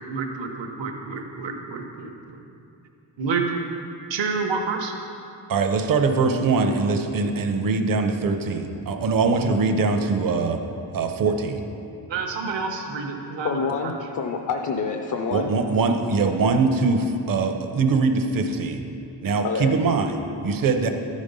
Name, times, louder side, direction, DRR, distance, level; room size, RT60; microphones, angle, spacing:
voice 1, 0.0-2.1 3.2-3.4 4.1-4.9 12.1-13.9, right 4 dB, 75° right, 2 dB, 0.9 m, -29 dB
voice 2, 5.5-10.6 10.9-11.6 15.3-18.8 19.2-20.9, right 4 dB, 50° right, 6 dB, 0.7 m, -22 dB
voice 3, 13.4-15.5 19.4-19.7, left 5 dB, 45° left, 4 dB, 0.5 m, -27 dB
12.0 x 5.2 x 5.3 m, 2.7 s
wide cardioid pair, 170°, 45 cm